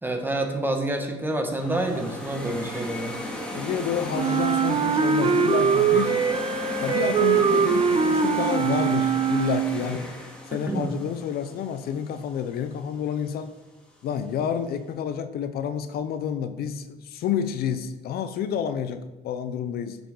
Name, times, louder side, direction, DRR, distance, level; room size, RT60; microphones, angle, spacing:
voice 1, 0.0-3.2 10.7-10.9, right 1 dB, 10° right, 4 dB, 1.6 m, -28 dB
sound 1, 1.5-12.5, equal, 5° left, 2.1 m, -35 dB
voice 2, 3.5-6.2 6.8-10.0 10.5-13.5 14.0-20.0, left 8 dB, 65° left, 11 dB, 0.7 m, -29 dB
Wind instrument woodwind instrument, 4.1-9.9, right 6 dB, 30° right, 0.9 m, -22 dB
10.0 x 6.9 x 3.9 m, 1.1 s
cardioid pair, 110°, 17 cm